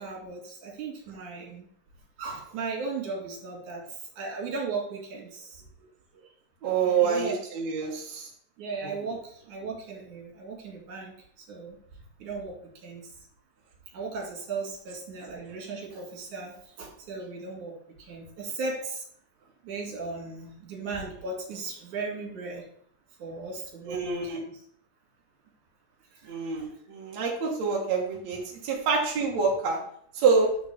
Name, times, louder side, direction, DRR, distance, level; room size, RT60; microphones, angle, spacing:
voice 1, 0.0-1.7 2.2-3.8 4.2-5.6 6.8-7.3 8.6-11.8 12.2-12.5 12.8-13.1 13.9-17.7 18.0-19.0 19.6-22.7 23.2-24.4 26.1-26.2, right 4 dB, 85° right, -1 dB, 3.9 m, -36 dB
voice 2, 6.6-8.3 23.9-24.4 26.3-29.8 30.1-30.5, right 5 dB, 65° right, -3 dB, 2.8 m, -26 dB
11.0 x 4.1 x 6.9 m, 0.66 s
omnidirectional pair, 3.3 m